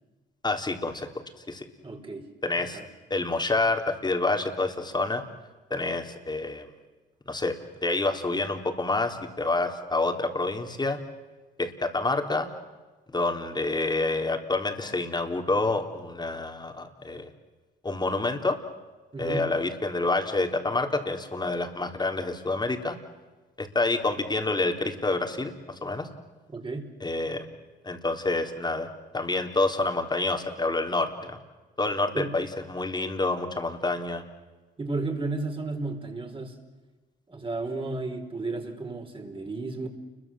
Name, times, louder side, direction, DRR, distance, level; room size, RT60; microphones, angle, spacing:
voice 1, 0.4-1.1 1.5-1.6 2.4-2.8 3.1-5.2 5.7-6.7 7.3-7.6 7.8-11.0 11.6-12.5 13.1-17.3 17.8-18.6 19.2-23.0 23.6-25.5 25.8-26.1 27.0-27.5 27.8-28.9 29.1-31.4 31.8-34.2, left 2 dB, 20° left, 5 dB, 3.7 m, -28 dB
voice 2, 1.8-2.2 2.6-2.9 19.1-19.5 26.5-26.9 32.1-32.3 34.8-36.6 37.3-39.9, right 3 dB, 25° right, 4 dB, 5.1 m, -33 dB
29.5 x 22.5 x 7.8 m, 1.2 s
cardioid pair, 90°, 20 cm